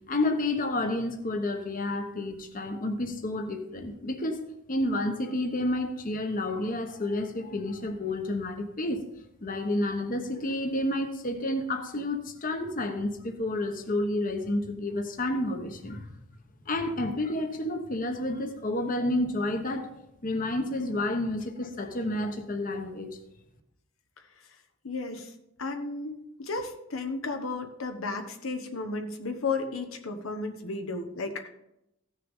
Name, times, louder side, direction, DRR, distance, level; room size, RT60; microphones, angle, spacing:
voice 1, 0.1-4.4 4.7-9.1 9.4-16.1 16.7-19.9 20.2-23.2, left 1 dB, 45° left, 5 dB, 1.0 m, -30 dB
voice 2, 24.8-25.3 25.6-31.5, left 3 dB, 85° left, 6 dB, 1.1 m, -33 dB
15.0 x 6.5 x 3.7 m, 0.83 s
head